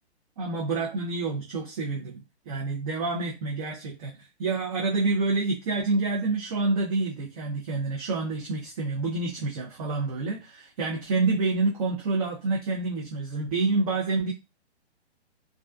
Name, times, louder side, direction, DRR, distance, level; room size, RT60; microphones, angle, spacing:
voice 1, 0.4-2.2 2.5-4.1 4.4-14.3, right 3 dB, 35° right, -3 dB, 0.6 m, -28 dB
2.3 x 2.2 x 2.4 m, 0.26 s
hypercardioid pair, 145°, 33 cm